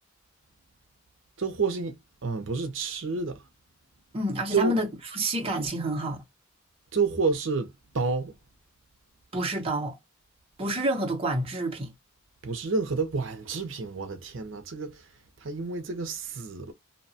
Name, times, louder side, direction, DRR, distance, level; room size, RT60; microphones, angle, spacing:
voice 1, 1.4-2.0 2.2-3.4 4.5-4.7 6.9-8.3 12.4-15.0 15.4-16.7, right 4 dB, 65° right, 0.6 m, -29 dB
voice 2, 4.1-6.2 9.3-10.0 10.6-11.9, right 1 dB, 30° right, 0.7 m, -28 dB
2.8 x 2.1 x 2.7 m
head